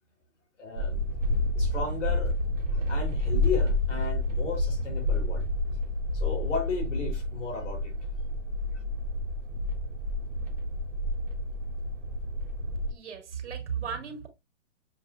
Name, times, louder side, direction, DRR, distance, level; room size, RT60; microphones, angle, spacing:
voice 1, 0.6-1.0 1.5-2.3 2.7-5.4 6.1-7.9, left 4 dB, 80° left, 3.3 m, -34 dB
sound 1, 0.8-12.9, left 1 dB, 90° right, 1.5 m, -29 dB
voice 2, 12.9-14.3, right 7 dB, 70° right, 1.8 m, -35 dB
7.3 x 2.9 x 2.4 m
hypercardioid pair, 175°, 36 cm